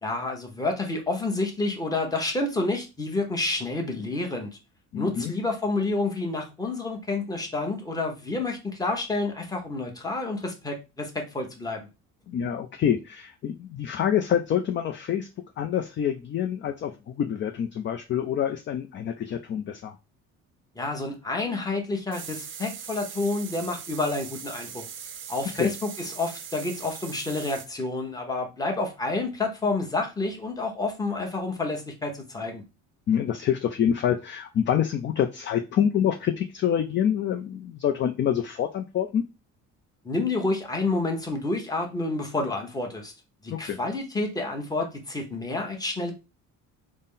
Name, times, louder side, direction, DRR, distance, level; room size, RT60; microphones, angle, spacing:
voice 1, 0.0-4.6 4.9-11.9 20.8-24.9 25.3-32.6 40.0-43.1 43.4-46.1, left 2 dB, 10° left, 2 dB, 0.9 m, -29 dB
voice 2, 4.9-5.3 12.3-15.3 15.6-20.0 25.6-25.7 33.1-39.2 43.5-43.8, left 9 dB, 40° left, 5 dB, 0.4 m, -26 dB
sound 1, 22.1-27.7, right 8 dB, 40° right, 0.5 m, -40 dB
4.0 x 2.1 x 3.7 m, 0.28 s
cardioid pair, 120°, 32 cm